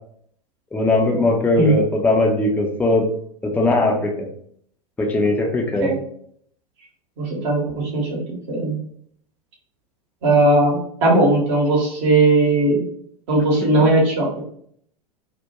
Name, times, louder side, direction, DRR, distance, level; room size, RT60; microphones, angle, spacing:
voice 1, 0.7-3.1 3.4-4.3 5.0-5.9 13.8-13.9, left 2 dB, 10° left, 1 dB, 0.5 m, -19 dB
voice 2, 7.2-8.2 8.5-8.8 10.2-12.8 13.3-14.3, right 2 dB, 50° right, -2 dB, 0.9 m, -18 dB
2.3 x 2.1 x 2.8 m, 0.64 s
figure-of-eight pair, 90°, 20 cm